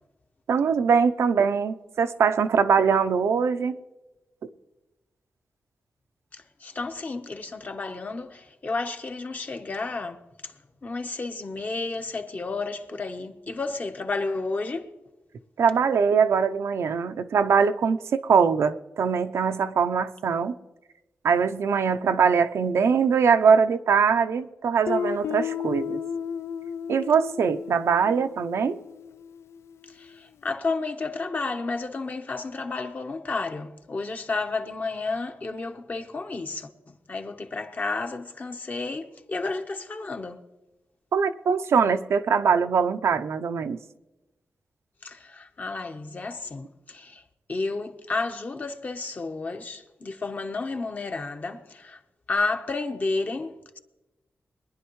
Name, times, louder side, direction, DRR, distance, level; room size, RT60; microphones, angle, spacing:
voice 1, 0.5-3.8 15.6-20.5 21.2-26.0 26.9-28.8 41.1-43.8, right 6 dB, 85° right, 0.6 m, -22 dB
voice 2, 6.6-10.2 10.4-10.5 10.8-14.9 30.0-36.7 37.1-40.4 45.0-47.2 47.5-52.0 52.3-53.8, left 3 dB, 40° left, 1.0 m, -31 dB
Guitar, 24.9-29.5, left 7 dB, 80° left, 0.4 m, -33 dB
22.5 x 10.5 x 3.1 m
wide cardioid pair, 120°, 5 cm